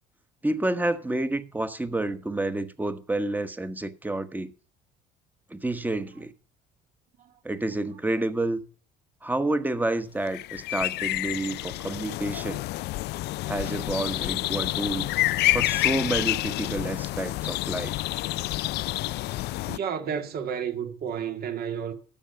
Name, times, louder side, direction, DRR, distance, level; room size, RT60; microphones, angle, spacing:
voice 1, 0.4-4.5 5.5-6.3 7.4-8.6 9.2-12.6 13.4-15.1 15.5-18.0, right 2 dB, 10° right, 1.2 m, -29 dB
sound 1, 10.3-19.8, left 18 dB, 65° left, 0.4 m, -28 dB
voice 2, 19.7-21.9, right 7 dB, 55° right, 2.0 m, -31 dB
13.0 x 6.5 x 5.5 m
supercardioid pair, 85°, 18 cm